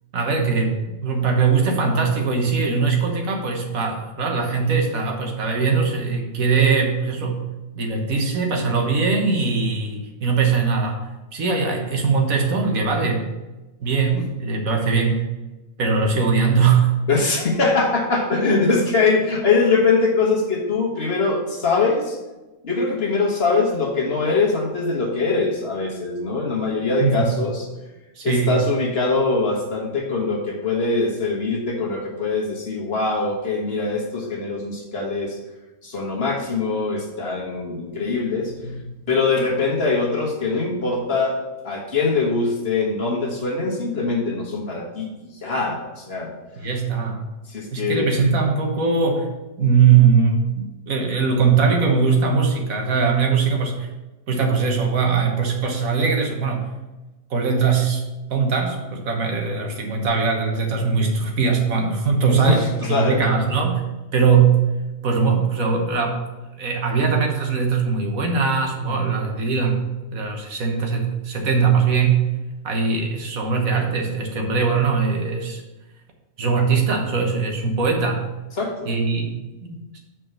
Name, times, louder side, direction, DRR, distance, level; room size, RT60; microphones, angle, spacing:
voice 1, 0.1-7.4 7.7-11.0 11.3-13.3 13.8-15.3 15.8-16.9 27.0-27.3 28.2-28.7 46.6-47.2 47.7-49.3 49.6-53.9 54.3-56.7 57.3-58.0 58.3-63.8 64.1-64.6 65.0-66.2 66.6-69.8 70.1-72.3 72.6-75.6 76.4-78.3 78.9-80.0, right 5 dB, 80° right, 2 dB, 1.6 m, -21 dB
voice 2, 17.1-22.2 22.6-27.7 28.2-35.4 35.8-46.4 47.5-48.2 62.3-63.2 78.6-78.9, left 3 dB, 45° left, -1 dB, 1.5 m, -22 dB
6.3 x 4.5 x 6.5 m, 1.1 s
omnidirectional pair, 1.4 m